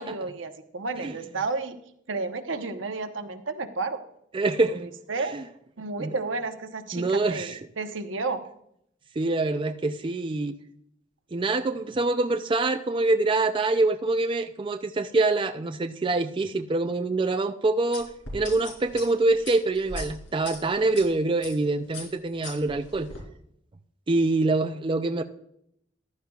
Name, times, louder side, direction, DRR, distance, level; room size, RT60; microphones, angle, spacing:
voice 1, 0.0-1.8 2.1-4.0 4.8-5.3 5.8-8.4, right 3 dB, 80° right, 7 dB, 1.0 m, -32 dB
voice 2, 4.3-4.9 5.2-5.4 6.0-6.1 6.9-7.6 9.2-10.6 11.3-23.1 24.1-25.2, right 2 dB, 25° right, 7 dB, 0.4 m, -25 dB
sound 1, 17.9-21.0 21.4-21.6 21.9-23.2, left 2 dB, 75° left, 3.7 m, -39 dB
14.5 x 11.5 x 2.4 m, 0.72 s
head